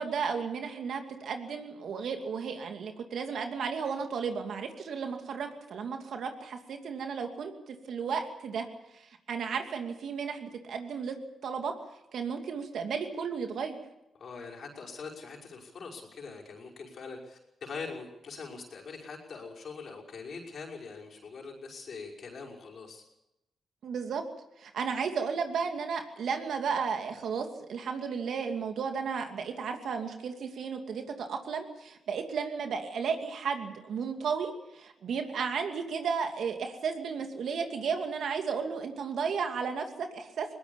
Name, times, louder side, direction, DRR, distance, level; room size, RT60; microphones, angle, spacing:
voice 1, 0.0-8.7 8.9-11.2 11.4-11.7 12.1-13.8 23.8-24.2 24.6-40.5, right 6 dB, 75° right, 5 dB, 2.6 m, -34 dB
voice 2, 14.1-23.0, left 4 dB, 65° left, -1 dB, 5.8 m, -43 dB
21.0 x 18.5 x 7.2 m, 0.89 s
supercardioid pair, 55°, 0 cm